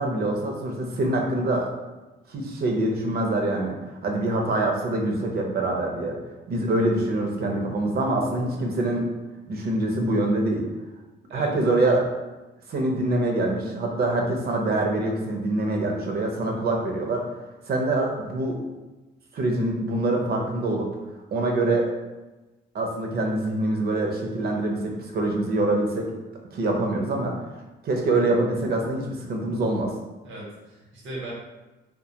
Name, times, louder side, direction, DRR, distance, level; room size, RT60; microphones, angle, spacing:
voice 1, 0.0-1.7 2.3-3.8 4.0-6.2 6.5-9.1 9.5-10.7 11.3-12.1 12.7-17.2 17.7-18.6 19.3-20.9 21.3-21.9 22.7-26.1 26.5-27.4 27.8-29.9, right 2 dB, 50° right, 1 dB, 0.6 m, -25 dB
voice 2, 30.2-31.3, right 2 dB, 80° right, -4 dB, 0.9 m, -37 dB
2.2 x 2.1 x 2.7 m, 1.1 s
cardioid pair, 90°, 20 cm